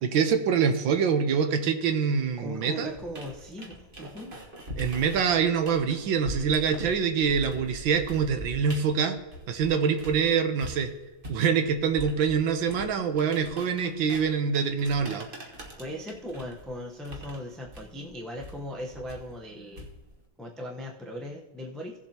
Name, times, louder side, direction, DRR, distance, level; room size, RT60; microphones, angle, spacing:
voice 1, 0.0-2.9 4.8-9.2 9.5-10.9 11.3-15.3, right 6 dB, 90° right, 7 dB, 1.7 m, -25 dB
voice 2, 2.4-4.3 15.4-19.9 20.4-22.0, equal, ahead, -1 dB, 0.4 m, -39 dB
sound 1, 2.9-10.3 10.6-20.2, right 1 dB, 30° right, 1.3 m, -42 dB
17.0 x 7.4 x 2.9 m, 1.1 s
omnidirectional pair, 2.0 m